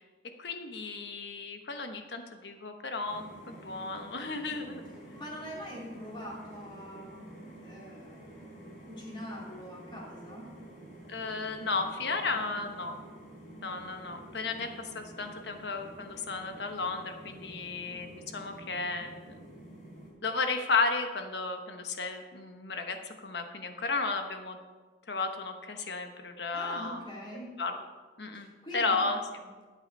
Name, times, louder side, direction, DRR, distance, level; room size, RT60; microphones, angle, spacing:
voice 1, 0.4-4.8 11.1-13.0 13.6-19.3 20.2-24.6 25.1-27.0 27.6-27.8 28.2-28.5 28.7-29.3, left 4 dB, 75° left, 6 dB, 1.1 m, -34 dB
sound 1, 3.0-20.1, right 1 dB, 45° left, 3.9 m, -49 dB
voice 2, 5.1-10.5 12.3-12.6 26.5-27.6 28.3-28.9 29.4-29.5, left 1 dB, 25° left, -4 dB, 2.9 m, -44 dB
12.0 x 8.1 x 5.3 m, 1.4 s
head